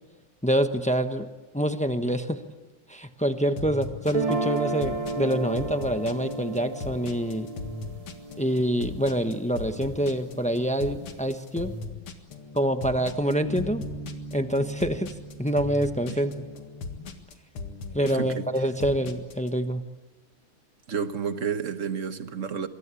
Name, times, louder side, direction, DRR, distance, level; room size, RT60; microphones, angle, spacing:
voice 1, 0.4-1.3 1.5-2.4 2.9-7.5 8.4-11.7 12.5-13.8 14.3-15.1 15.4-16.5 17.9-19.8, equal, 10° left, 0.4 m, -26 dB
sound 1, 3.6-19.5, left 4 dB, 85° left, 2.8 m, -39 dB
sound 2, 4.0-10.1, right 3 dB, 25° right, 0.8 m, -33 dB
Bass guitar, 13.4-17.1, right 2 dB, 55° left, 4.1 m, -40 dB
voice 2, 18.0-18.5 20.9-22.7, right 6 dB, 45° right, 1.2 m, -31 dB
26.5 x 22.0 x 8.4 m
omnidirectional pair, 2.4 m